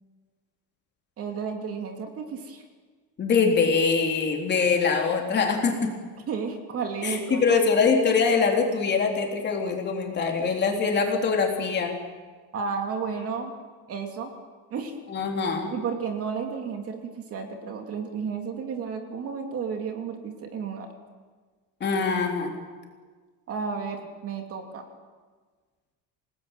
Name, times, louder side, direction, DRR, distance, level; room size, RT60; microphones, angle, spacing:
voice 1, 1.2-2.6 6.3-7.4 12.5-13.5 13.9-14.3 14.7-14.9 15.7-20.9 23.5-24.8, right 5 dB, 35° right, 4 dB, 2.9 m, -32 dB
voice 2, 3.2-5.9 7.0-11.9 15.1-15.7 21.8-22.5, left 5 dB, 25° left, 2 dB, 3.7 m, -23 dB
27.0 x 19.5 x 9.2 m, 1.5 s
cardioid pair, 175°, 40 cm